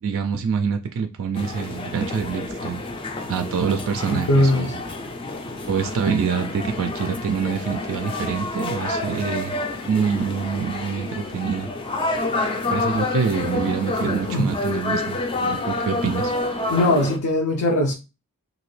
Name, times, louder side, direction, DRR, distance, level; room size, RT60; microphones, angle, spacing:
voice 1, 0.0-2.8 3.3-4.8 5.7-9.6 9.8-11.7 12.7-16.3, right 6 dB, 60° right, 0.3 m, -26 dB
sound 1, 1.4-17.2, left 2 dB, 25° left, 0.4 m, -28 dB
voice 2, 4.1-4.7 14.3-14.5 16.7-17.9, left 1 dB, 70° left, 0.6 m, -20 dB
2.9 x 2.6 x 3.1 m
head